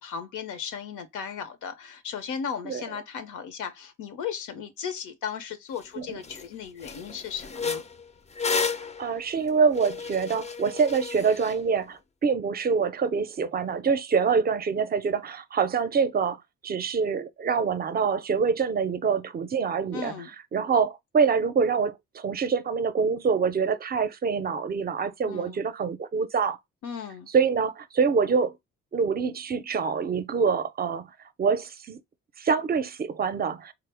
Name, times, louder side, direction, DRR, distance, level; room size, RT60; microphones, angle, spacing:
voice 1, 0.0-7.8 19.9-20.3 25.2-25.6 26.8-27.3, left 7 dB, 80° left, 0.7 m, -36 dB
sound 1, 5.8-5.9 6.2-6.5 6.8-11.6, left 5 dB, 25° left, 0.4 m, -32 dB
voice 2, 9.0-20.1 20.5-26.6 27.3-28.5 28.9-31.1 31.4-32.0 32.4-33.7, right 5 dB, 30° right, 0.5 m, -25 dB
3.6 x 2.0 x 3.3 m
cardioid pair, 90°, 30 cm